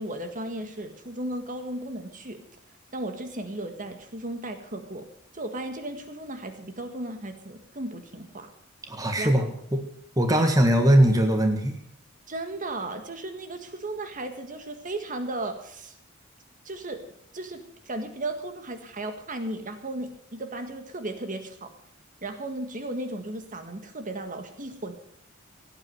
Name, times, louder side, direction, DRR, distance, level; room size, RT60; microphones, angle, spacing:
voice 1, 0.0-2.4 2.9-5.0 5.3-8.5 9.2-9.5 10.3-10.5 12.3-15.9 16.6-17.0 17.3-21.7 22.2-24.9, right 2 dB, 40° right, 7 dB, 1.8 m, -35 dB
voice 2, 8.9-9.8 10.2-11.8, right 1 dB, 20° right, 4 dB, 1.6 m, -21 dB
17.5 x 8.9 x 7.9 m, 0.67 s
head